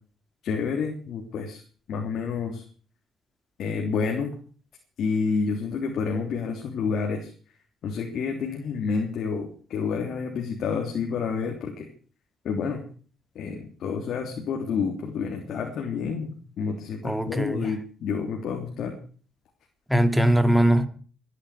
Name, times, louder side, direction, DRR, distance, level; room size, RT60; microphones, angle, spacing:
voice 1, 0.4-1.6 1.9-2.6 3.6-4.3 5.0-7.3 7.8-11.9 12.4-12.8 13.3-19.0, left 5 dB, 70° left, 3.3 m, -29 dB
voice 2, 17.0-17.7 19.9-20.9, right 1 dB, ahead, 2.3 m, -21 dB
24.5 x 10.0 x 5.0 m
cardioid pair, 90°, 0 cm